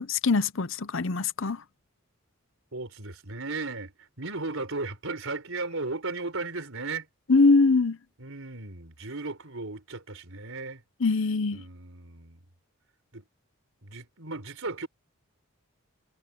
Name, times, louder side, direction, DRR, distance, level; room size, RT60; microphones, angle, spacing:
voice 1, 0.0-1.6 7.3-8.0 11.0-11.6, left 3 dB, 60° left, 0.8 m, -22 dB
voice 2, 2.7-7.1 8.2-10.8 11.5-12.4 13.1-13.2 13.8-14.9, right 3 dB, 70° right, 4.2 m, -36 dB
head